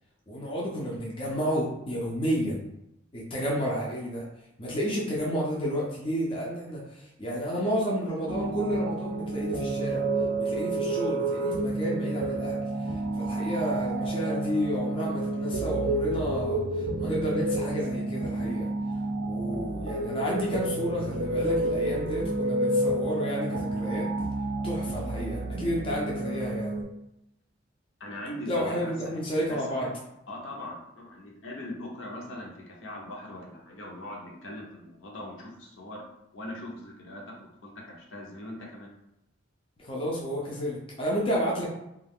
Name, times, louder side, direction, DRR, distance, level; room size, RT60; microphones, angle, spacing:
voice 1, 0.3-2.6 3.1-4.3 4.6-10.1 10.3-18.7 19.2-24.1 24.6-26.8 28.5-29.9 39.8-41.7, equal, 25° left, -4 dB, 0.5 m, -31 dB
sound 1, 8.3-26.8, right 2 dB, 85° right, 0.5 m, -30 dB
voice 2, 28.0-28.9 29.5-29.9 30.3-36.0 36.3-37.3 37.6-38.9, left 1 dB, 70° left, -2 dB, 0.7 m, -40 dB
2.4 x 2.3 x 3.4 m, 0.84 s
head